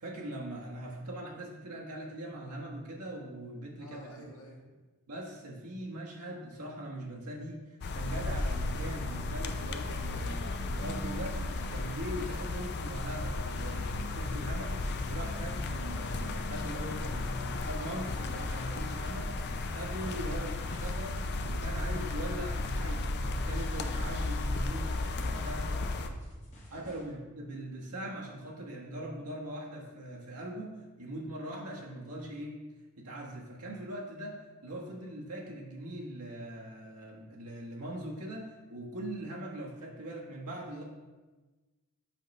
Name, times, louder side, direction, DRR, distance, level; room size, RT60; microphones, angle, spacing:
voice 1, 0.0-4.3 5.1-7.6 7.9-14.7 15.1-19.3 19.7-21.2 21.5-25.0 25.4-25.6 26.7-32.6 33.0-40.8, right 1 dB, 85° right, -2 dB, 1.3 m, -41 dB
voice 2, 3.8-4.6 19.9-20.7 24.6-24.9 25.3-26.1 26.7-27.0 40.7-40.8, left 1 dB, 65° left, -2 dB, 1.5 m, -50 dB
sound 1, 7.8-26.1, left 2 dB, 50° left, 0.5 m, -34 dB
sound 2, 14.8-27.1, left 1 dB, 35° left, 1.6 m, -55 dB
7.6 x 5.3 x 3.2 m, 1.2 s
head